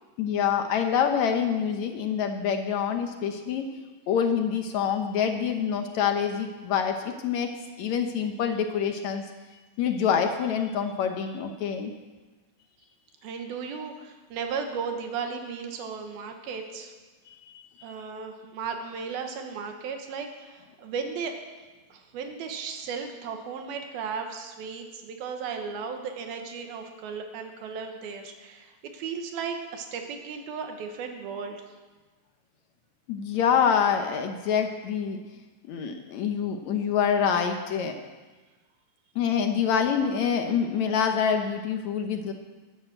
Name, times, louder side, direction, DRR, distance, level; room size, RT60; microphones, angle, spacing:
voice 1, 0.2-3.7 4.1-7.5 7.8-9.2 9.8-11.9 17.5-17.9 33.1-35.2 35.7-38.0 39.2-42.3, left 7 dB, 70° left, 5 dB, 1.8 m, -26 dB
voice 2, 13.2-16.9 17.8-21.4 21.9-31.6, right 5 dB, 85° right, 4 dB, 3.2 m, -35 dB
13.5 x 11.0 x 7.8 m, 1.3 s
omnidirectional pair, 4.2 m